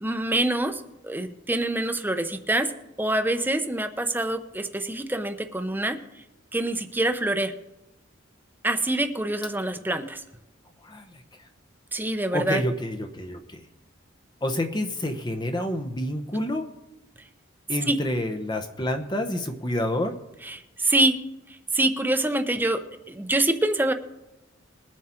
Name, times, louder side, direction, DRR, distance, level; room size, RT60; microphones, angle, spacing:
voice 1, 0.0-2.7 3.0-6.0 6.5-7.5 8.6-10.2 11.9-12.6 17.9-18.0 20.4-21.2 21.5-22.8 23.1-23.9, right 2 dB, 10° right, 8 dB, 0.8 m, -25 dB
voice 2, 12.3-13.6 14.4-16.7 17.7-20.2, left 1 dB, 20° left, 6 dB, 0.8 m, -28 dB
21.0 x 7.5 x 4.4 m, 0.95 s
head